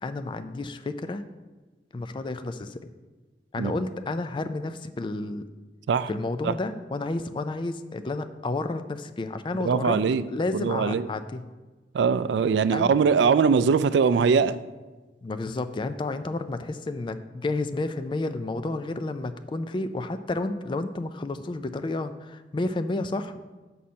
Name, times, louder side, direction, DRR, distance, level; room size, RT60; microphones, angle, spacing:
voice 1, 0.0-1.2 1.9-2.9 3.5-5.5 6.1-10.0 10.3-11.4 12.7-12.9 15.2-23.4, left 2 dB, 25° left, 10 dB, 0.3 m, -31 dB
voice 2, 9.6-10.2 10.5-11.0 11.9-14.5, right 5 dB, 70° right, 14 dB, 0.3 m, -21 dB
6.9 x 4.3 x 6.3 m, 1.2 s
head